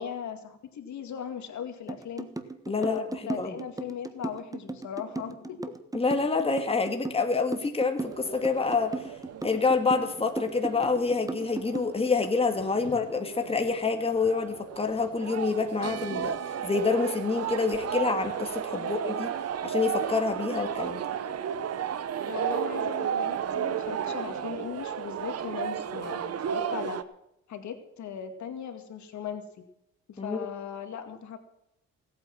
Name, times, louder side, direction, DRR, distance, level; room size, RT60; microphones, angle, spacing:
voice 1, 0.0-2.3 2.8-5.8 12.8-13.0 18.7-19.3 22.3-27.0 27.5-29.4 30.1-31.4, left 8 dB, 70° left, 6 dB, 2.3 m, -38 dB
sound 1, 1.9-12.4, right 3 dB, 10° right, 1.3 m, -36 dB
voice 2, 2.7-3.6 5.9-9.0 9.4-16.4 16.6-19.4 19.6-21.0 30.2-30.5, left 4 dB, 20° left, 5 dB, 1.9 m, -27 dB
sound 2, 8.0-27.0, right 8 dB, 55° right, 1.0 m, -34 dB
17.5 x 8.9 x 6.0 m, 0.82 s
cardioid pair, 90°, 30 cm